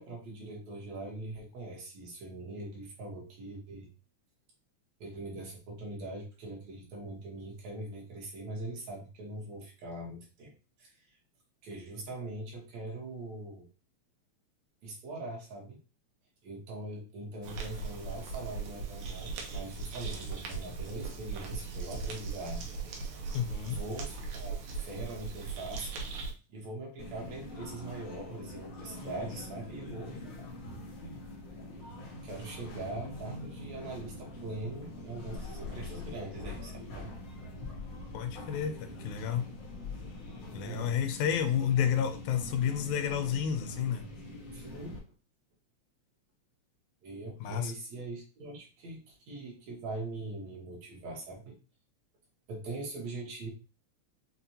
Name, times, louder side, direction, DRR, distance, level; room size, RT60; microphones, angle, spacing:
voice 1, 0.0-3.9 5.0-10.5 10.8-11.2 11.6-13.7 14.8-15.8 16.4-22.7 23.6-26.0 26.5-30.5 32.2-37.2 40.5-41.0 44.5-45.0 47.0-51.5 52.5-53.5, right 2 dB, 70° right, -2 dB, 2.4 m, -42 dB
sound 1, 17.4-26.3, right 4 dB, 90° right, 2.2 m, -39 dB
voice 2, 23.3-23.8 38.1-39.5 40.5-44.1 47.4-47.7, left 8 dB, 85° left, 6 dB, 2.0 m, -30 dB
sound 2, 27.0-45.0, left 1 dB, 70° left, 0.8 m, -44 dB
6.0 x 2.2 x 2.7 m, 0.33 s
omnidirectional pair, 3.3 m